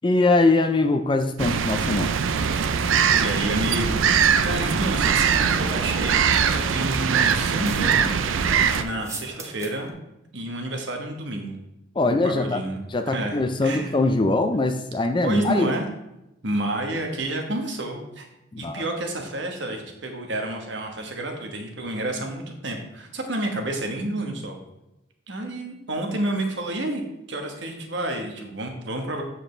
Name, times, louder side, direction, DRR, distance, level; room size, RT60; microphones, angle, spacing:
voice 1, 0.0-2.1 12.0-12.6 12.9-15.8 18.5-18.8, left 2 dB, 25° left, 7 dB, 0.4 m, -22 dB
sound 1, 1.4-8.8, right 6 dB, 75° right, 0.5 m, -22 dB
voice 2, 3.2-6.2 6.5-8.1 8.5-9.9 10.3-11.6 12.0-12.8 13.1-13.9 15.2-15.8 16.4-18.3 18.6-24.6 25.3-27.0 27.3-29.2, right 1 dB, 60° right, 3 dB, 1.3 m, -29 dB
sound 2, 4.4-9.9, right 2 dB, 15° right, 0.7 m, -40 dB
7.5 x 6.8 x 3.3 m, 0.90 s
head